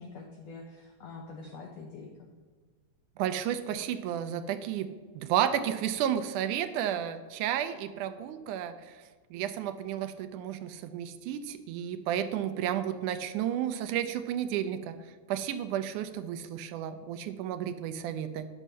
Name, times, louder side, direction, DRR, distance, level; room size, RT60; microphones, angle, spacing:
voice 1, 0.0-2.3, left 3 dB, 70° left, 2 dB, 1.7 m, -45 dB
voice 2, 3.2-4.9 5.1-9.0 9.3-15.0 15.3-18.5, right 10 dB, 80° right, 10 dB, 2.0 m, -32 dB
11.0 x 7.2 x 5.5 m, 1.4 s
omnidirectional pair, 3.8 m